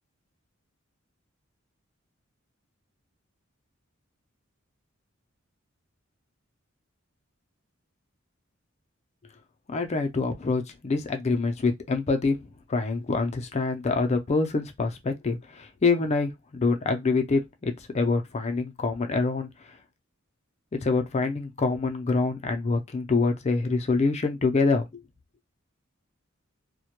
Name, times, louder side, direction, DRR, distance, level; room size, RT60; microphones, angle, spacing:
voice 1, 9.7-19.5 20.7-25.0, left 3 dB, 30° left, 0.4 m, -26 dB
2.1 x 2.1 x 2.8 m
head